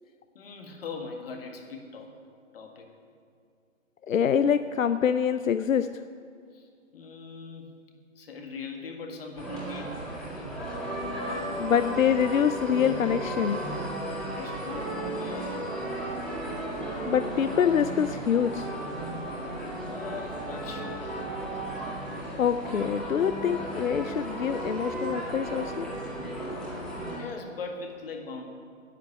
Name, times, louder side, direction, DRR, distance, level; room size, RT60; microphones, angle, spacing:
voice 1, 0.3-2.2 2.5-2.9 6.5-7.8 8.2-10.0 10.3-10.6 14.1-15.8 19.9-21.6 26.4-28.4, left 4 dB, 45° left, 3 dB, 1.9 m, -41 dB
voice 2, 4.1-5.9 11.6-13.6 17.0-18.7 22.4-25.9, left 8 dB, 85° left, 11 dB, 0.6 m, -25 dB
sound 1, 9.4-27.2, right 1 dB, ahead, 2.0 m, -34 dB
Screaming, 12.2-12.8 13.3-14.0 14.3-14.9 15.2-17.1 17.6-18.3, right 7 dB, 55° right, 1.5 m, -48 dB
10.5 x 8.4 x 8.5 m, 2.3 s
hypercardioid pair, 150°, 39 cm